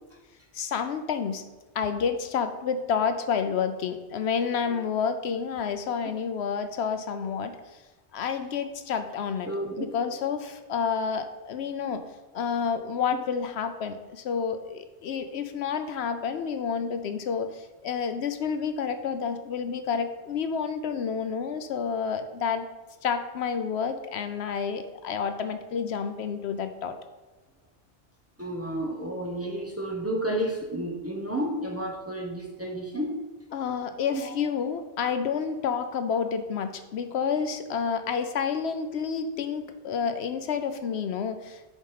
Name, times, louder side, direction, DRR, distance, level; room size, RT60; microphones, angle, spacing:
voice 1, 0.5-1.4 1.7-7.8 8.1-9.5 9.8-12.0 12.3-22.7 23.0-27.0 33.5-41.7, left 6 dB, 75° left, 9 dB, 0.9 m, -29 dB
voice 2, 9.5-9.8 10.2-10.3 11.9-12.0 28.4-33.2 34.1-34.3 35.6-35.7, right 1 dB, 15° right, 0 dB, 1.0 m, -31 dB
7.2 x 5.2 x 5.7 m, 1.1 s
omnidirectional pair, 1.1 m